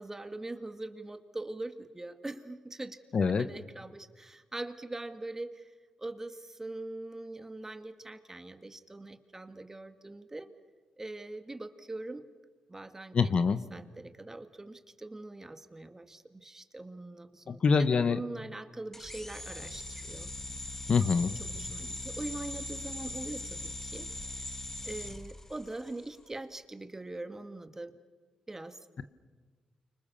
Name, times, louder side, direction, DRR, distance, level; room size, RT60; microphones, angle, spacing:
voice 1, 0.0-5.7 6.0-10.5 11.0-12.2 12.7-13.1 13.7-17.6 18.0-20.3 21.0-24.1 24.8-27.9 28.5-28.8, right 2 dB, 20° right, 9 dB, 2.1 m, -42 dB
voice 2, 3.1-3.5 13.1-13.6 17.5-18.2 20.9-21.3, left 5 dB, 55° left, 12 dB, 1.1 m, -25 dB
sound 1, 18.9-26.0, left 2 dB, 15° left, 1.4 m, -40 dB
29.5 x 25.0 x 7.0 m, 1.5 s
cardioid pair, 70°, 2 cm